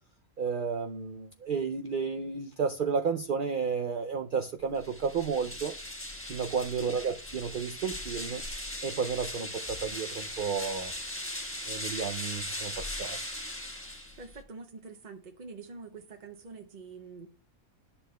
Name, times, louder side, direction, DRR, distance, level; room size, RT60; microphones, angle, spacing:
voice 1, 0.4-5.7 6.3-8.4 8.8-10.9 11.7-13.2, right 6 dB, 75° right, 5 dB, 0.4 m, -32 dB
sound 1, 4.7-14.4, left 1 dB, 10° left, 1.2 m, -39 dB
voice 2, 6.8-7.2 14.2-17.3, right 4 dB, 40° right, 4 dB, 0.7 m, -46 dB
11.0 x 7.0 x 2.3 m, 0.35 s
omnidirectional pair, 1.6 m